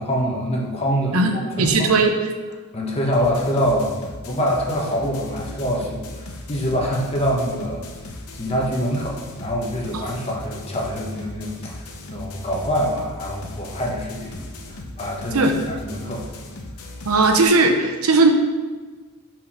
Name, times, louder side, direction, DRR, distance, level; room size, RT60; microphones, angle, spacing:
voice 1, 0.0-1.9 2.7-3.9 4.2-7.8 8.3-11.8 12.1-16.3, equal, 30° left, -2 dB, 1.2 m, -25 dB
voice 2, 1.6-2.1 15.3-15.6 17.0-18.3, right 3 dB, 75° right, 4 dB, 0.8 m, -17 dB
sound 1, 3.1-17.4, left 2 dB, 75° left, 0.9 m, -37 dB
5.4 x 4.6 x 5.9 m, 1.4 s
head